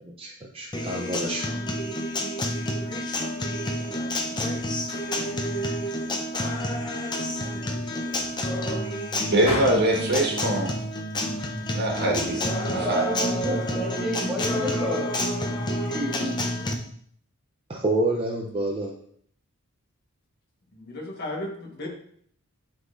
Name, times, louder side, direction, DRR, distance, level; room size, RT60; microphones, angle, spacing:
voice 1, 0.0-1.5 17.7-18.9, right 2 dB, 25° right, -1 dB, 0.5 m, -28 dB
Acoustic guitar, 0.7-16.7, left 1 dB, 20° left, 0.6 m, -29 dB
sound 1, 4.9-5.6 6.3-7.0 7.3-7.7 8.2-10.2 10.5-10.9 11.3-11.7 12.0-13.8, left 2 dB, 85° left, 1.5 m, -40 dB
voice 2, 7.5-8.2 20.7-21.9, left 1 dB, 50° left, 1 dB, 1.3 m, -37 dB
voice 3, 9.3-10.8 11.7-12.5 12.7-13.1, right 1 dB, 50° right, 0 dB, 1.4 m, -23 dB
voice 4, 12.6-15.1 15.9-16.4, equal, ahead, -6 dB, 1.7 m, -30 dB
11.0 x 3.8 x 2.5 m, 0.63 s
head